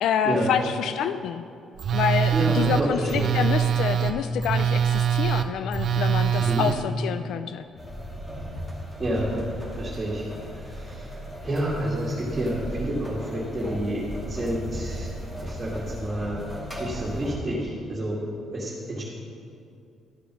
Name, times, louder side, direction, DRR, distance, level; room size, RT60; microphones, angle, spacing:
voice 1, 0.0-1.4 1.9-7.7, left 8 dB, 80° left, 11 dB, 0.3 m, -27 dB
Telephone, 1.8-6.8, right 8 dB, 60° right, 0.7 m, -23 dB
voice 2, 2.3-3.4 6.3-6.7 9.0-9.4 9.7-18.2 18.5-19.0, right 1 dB, 25° right, -7 dB, 2.2 m, -29 dB
sound 1, 7.8-17.4, equal, 15° left, 2.4 m, -36 dB
12.0 x 6.9 x 6.2 m, 2.5 s
cardioid pair, 90°, 0 cm